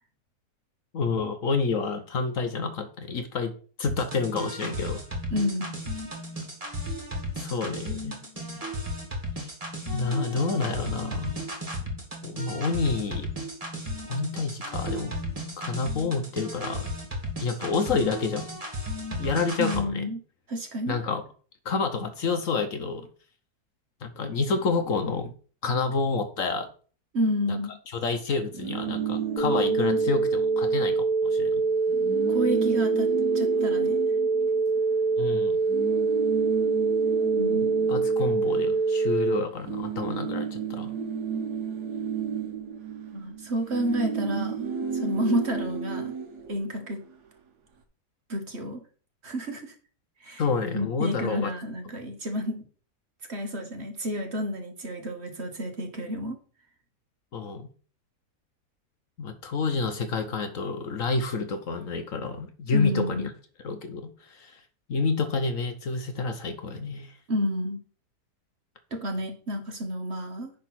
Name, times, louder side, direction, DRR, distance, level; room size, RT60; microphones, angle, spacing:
voice 1, 0.9-5.0 7.4-8.1 9.9-11.4 12.2-13.3 14.1-15.1 15.6-16.9 17.4-18.5 19.2-20.1 20.9-21.2 21.6-23.1 24.0-25.3 25.6-26.7 27.5-27.6 27.9-31.6 35.2-35.6 37.9-40.9 50.4-51.5 57.3-57.7 59.2-63.3 63.6-64.6 64.9-67.1, left 4 dB, 60° left, 7 dB, 1.1 m, -29 dB
sound 1, 3.9-19.8, equal, 20° right, 2.0 m, -34 dB
voice 2, 5.3-5.7 19.6-20.2 20.5-21.0 27.1-27.7 32.3-33.1 33.3-34.0 37.3-38.0 43.1-44.6 44.9-46.1 46.5-47.0 48.3-48.8 49.2-49.7 50.2-50.4 50.7-52.6 53.3-56.4 62.7-63.3 67.3-67.8 68.9-70.5, equal, 45° right, 4 dB, 1.5 m, -30 dB
sound 2, 28.4-31.0 31.3-31.5 31.7-35.1 35.7-39.2 39.5-47.1, right 7 dB, 75° right, 1.7 m, -33 dB
sound 3, 29.4-39.4, right 4 dB, 25° left, 1.7 m, -24 dB
10.5 x 3.7 x 5.9 m, 0.41 s
omnidirectional pair, 1.8 m